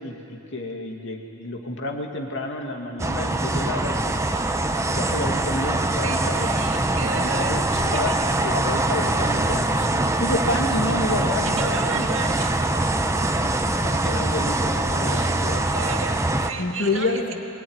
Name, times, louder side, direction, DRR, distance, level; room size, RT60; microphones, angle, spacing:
voice 1, 0.0-4.2 5.0-6.5 7.0-8.1 8.4-9.7 10.2-12.1 13.6-15.8 16.6-17.3, left 2 dB, 60° left, 2 dB, 2.5 m, -29 dB
sound 1, 3.0-16.5, right 2 dB, 15° right, 0.9 m, -23 dB
voice 2, 6.0-8.1 9.8-10.1 11.6-13.0 15.1-15.3 15.6-17.2, right 5 dB, 65° right, 3 dB, 2.0 m, -34 dB
22.0 x 20.0 x 9.8 m, 2.9 s
head